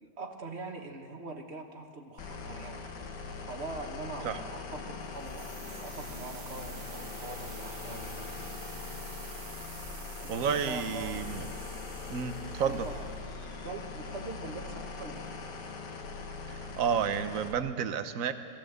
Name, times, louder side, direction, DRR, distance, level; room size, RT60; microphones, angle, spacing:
voice 1, 0.0-2.8 3.5-8.2 10.2-11.2 12.6-13.0 13.6-15.3, right 3 dB, 40° right, 4 dB, 1.6 m, -43 dB
sound 1, 2.2-17.5, left 4 dB, 75° left, 2.0 m, -41 dB
sound 2, 5.1-14.0, right 6 dB, 80° right, 1.8 m, -49 dB
voice 2, 10.3-11.5 12.1-12.9 16.5-18.3, right 7 dB, 55° right, 10 dB, 1.2 m, -31 dB
21.0 x 15.5 x 8.0 m, 2.3 s
omnidirectional pair, 1.9 m